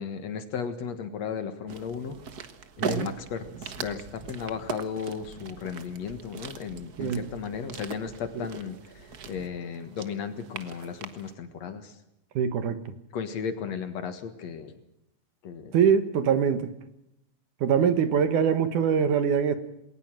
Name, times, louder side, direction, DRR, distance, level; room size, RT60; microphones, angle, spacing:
voice 1, 0.0-2.2 2.8-12.0 13.1-14.7 15.4-15.7 17.8-17.9, left 6 dB, 60° left, 9 dB, 2.6 m, -35 dB
sound 1, 1.7-11.3, right 6 dB, 90° right, 0.8 m, -40 dB
voice 2, 12.4-12.8 15.7-16.7 17.6-19.6, right 7 dB, 70° right, 11 dB, 2.8 m, -23 dB
20.5 x 19.0 x 7.6 m, 0.82 s
omnidirectional pair, 3.7 m